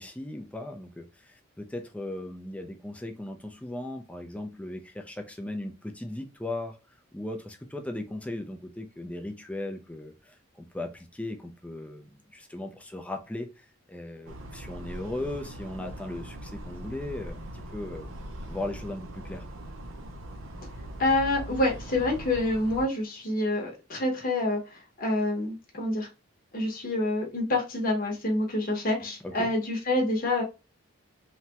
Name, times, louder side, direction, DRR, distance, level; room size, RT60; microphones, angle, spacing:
voice 1, 0.0-6.8 7.1-19.4 29.0-29.5, left 1 dB, 5° left, 0.4 m, -38 dB
sound 1, 14.3-22.9, right 1 dB, 70° right, 0.5 m, -41 dB
voice 2, 21.0-26.1 26.5-30.4, left 2 dB, 45° left, 0.9 m, -27 dB
3.0 x 2.2 x 2.8 m
head